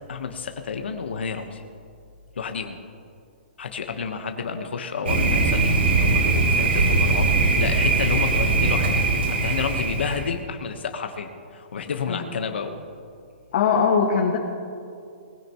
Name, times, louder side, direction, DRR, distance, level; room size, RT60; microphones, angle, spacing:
voice 1, 0.1-1.6 2.4-2.8 3.6-12.8, left 5 dB, 85° left, 5 dB, 1.2 m, -30 dB
Thunder, 5.1-10.3, right 3 dB, 90° right, 3.0 m, -21 dB
voice 2, 13.5-14.4, left 6 dB, 45° left, -2 dB, 1.7 m, -20 dB
20.0 x 16.5 x 3.1 m, 2.4 s
hypercardioid pair, 170°, 6 cm